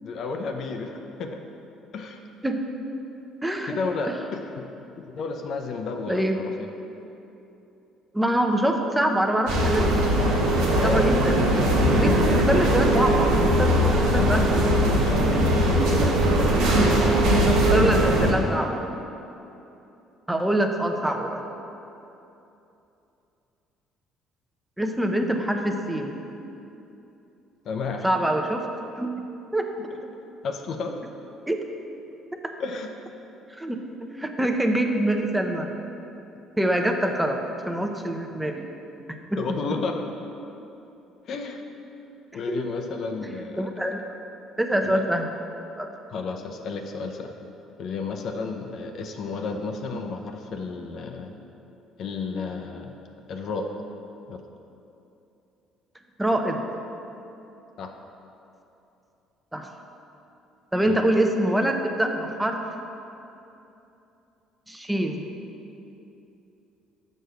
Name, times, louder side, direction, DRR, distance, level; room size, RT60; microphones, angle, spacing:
voice 1, 0.0-1.4 1.9-2.2 3.6-4.6 5.1-6.7 10.5-11.1 15.0-17.0 27.7-28.1 30.4-31.0 32.6-32.9 39.4-40.1 41.3-41.6 42.3-43.6 44.8-45.0 46.1-47.3 47.8-51.4 52.0-53.0 53.3-53.9 54.3-54.4 57.8-57.9 60.9-61.0, left 4 dB, 50° left, 4 dB, 0.5 m, -32 dB
voice 2, 3.4-3.8 6.1-6.4 8.1-10.2 10.8-11.3 11.9-14.6 15.3-15.4 17.5-18.8 20.3-21.4 24.8-26.1 28.0-28.7 29.0-29.1 29.5-29.7 31.5-31.6 33.5-33.8 34.2-35.7 36.6-37.4 37.7-38.7 42.5-42.6 43.6-44.0 44.6-45.3 45.8-45.9 56.2-56.6 59.5-59.7 60.7-62.8 64.7-65.2, right 1 dB, 10° right, 4 dB, 0.7 m, -25 dB
sound 1, 9.5-18.3, right 1 dB, 65° right, 1.0 m, -20 dB
6.3 x 4.4 x 6.6 m, 2.8 s
figure-of-eight pair, 50°, 0 cm